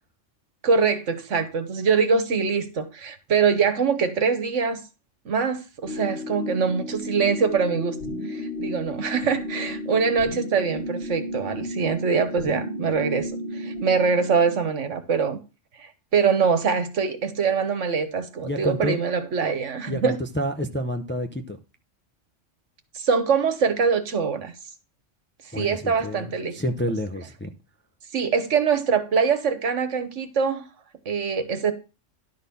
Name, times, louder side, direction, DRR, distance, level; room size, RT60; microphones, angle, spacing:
voice 1, 0.6-4.8 5.2-8.0 8.3-15.4 15.8-20.2 22.9-24.5 25.5-26.6 28.1-30.6 31.0-31.7, right 5 dB, 75° right, 1.5 m, -23 dB
sound 1, 5.8-14.6, left 1 dB, 55° left, 4.1 m, -33 dB
voice 2, 18.4-19.0 19.9-21.6 25.5-27.5, equal, 15° left, 0.5 m, -29 dB
11.5 x 4.1 x 6.9 m
omnidirectional pair, 1.3 m